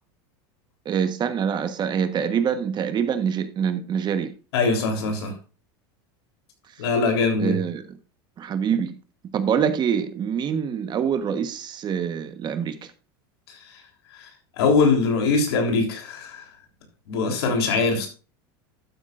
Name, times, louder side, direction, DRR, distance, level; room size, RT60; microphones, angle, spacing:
voice 1, 0.8-4.3 7.4-7.8 8.4-8.9 9.3-12.9, right 7 dB, 35° right, 1.3 m, -25 dB
voice 2, 4.5-5.3 6.8-7.6 14.2-14.3 14.6-16.5 17.1-18.1, left 4 dB, 85° left, 3.6 m, -22 dB
12.0 x 9.0 x 2.6 m
supercardioid pair, 115°, 13 cm